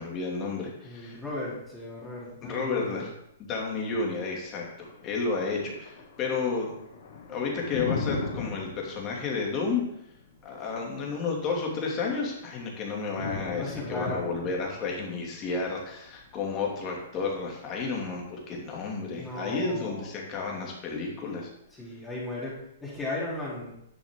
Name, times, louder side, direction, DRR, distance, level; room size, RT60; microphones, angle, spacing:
voice 1, 0.0-1.2 2.4-3.1 3.4-6.7 7.3-9.8 10.4-21.5, left 4 dB, 30° left, -1 dB, 2.6 m, -31 dB
voice 2, 0.8-3.1 10.6-10.7 13.5-14.2 19.1-20.1 21.7-23.8, left 1 dB, 10° left, -8 dB, 3.3 m, -36 dB
Thunder, 4.4-18.4, left 5 dB, 65° left, 2.2 m, -40 dB
10.5 x 6.3 x 3.8 m, 0.79 s
hypercardioid pair, 135°, 0 cm